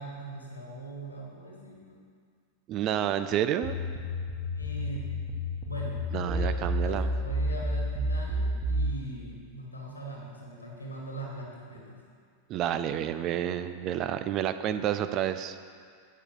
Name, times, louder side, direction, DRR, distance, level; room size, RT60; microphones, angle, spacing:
voice 1, 0.0-2.0 4.5-5.1 5.6-12.0, right 2 dB, 85° left, -3 dB, 2.0 m, -41 dB
voice 2, 2.7-3.7 6.1-7.1 12.5-15.6, right 10 dB, 35° right, 11 dB, 0.4 m, -29 dB
sound 1, 3.6-8.9, equal, 15° right, 1.6 m, -30 dB
9.0 x 5.6 x 6.7 m, 2.1 s
figure-of-eight pair, 90°, 0 cm